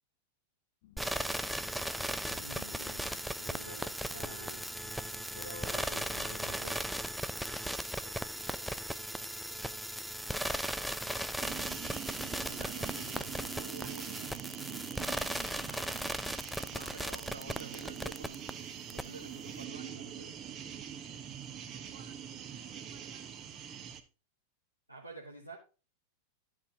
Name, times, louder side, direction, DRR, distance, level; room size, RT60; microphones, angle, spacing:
sound 1, 0.8-7.3, left 13 dB, 50° left, 0.7 m, -60 dB
sound 2, 1.0-18.5 18.9-19.0, equal, ahead, 0.4 m, -37 dB
voice 1, 2.3-4.6 5.4-6.8 12.5-14.4 16.7-18.4 18.9-20.3 24.9-25.6, right 2 dB, 90° right, -3 dB, 1.2 m, -49 dB
voice 2, 8.0-11.8 14.9-16.1 16.4-18.4 21.0-23.8, right 7 dB, 60° right, 0 dB, 2.3 m, -61 dB
sound 3, 11.4-24.0, right 9 dB, 30° right, 0.9 m, -43 dB
11.5 x 4.8 x 3.9 m, 0.33 s
figure-of-eight pair, 90°, 0 cm